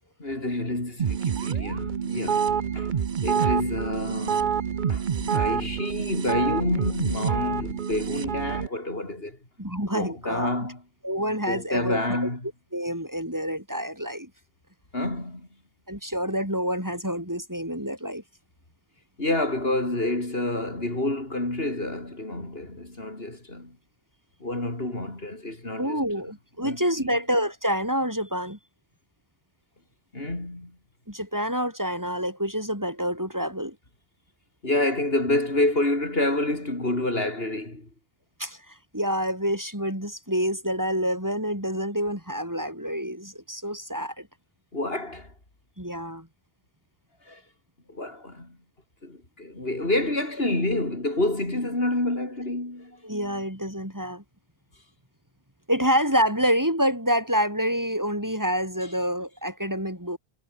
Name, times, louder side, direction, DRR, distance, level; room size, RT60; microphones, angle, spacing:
voice 1, 0.2-2.9 3.2-9.4 9.9-10.8 11.5-12.4 14.9-15.5 19.2-23.8 24.4-26.0 26.6-27.2 30.1-30.8 34.6-37.9 44.7-45.3 47.3-47.4 47.9-48.6 49.0-53.0, left 2 dB, 70° left, 5.2 m, -28 dB
sound 1, 1.0-8.7, right 7 dB, 55° right, 0.9 m, -27 dB
voice 2, 9.6-10.5 11.0-12.3 12.7-14.3 15.9-18.2 25.8-28.6 31.1-33.8 38.4-44.3 45.8-46.3 53.0-54.2 55.7-60.2, equal, 20° right, 6.3 m, -27 dB
omnidirectional pair, 1.0 m